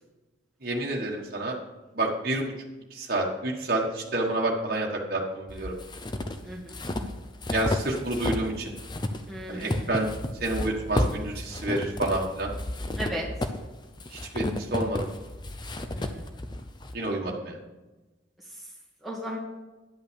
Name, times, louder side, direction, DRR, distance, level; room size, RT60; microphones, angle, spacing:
voice 1, 0.6-1.6 1.9-2.5 2.9-5.7 7.5-8.7 9.5-10.1 10.4-12.5 14.1-15.1 16.9-17.5, right 1 dB, 50° right, -2 dB, 1.4 m, -29 dB
sound 1, 5.5-8.5 8.8-16.9, left 1 dB, 25° left, 0.6 m, -32 dB
voice 2, 6.4-6.8 9.3-9.8 13.0-13.3 15.9-16.2 19.0-19.4, equal, ahead, -6 dB, 2.2 m, -35 dB
10.5 x 5.7 x 6.8 m, 1.1 s
head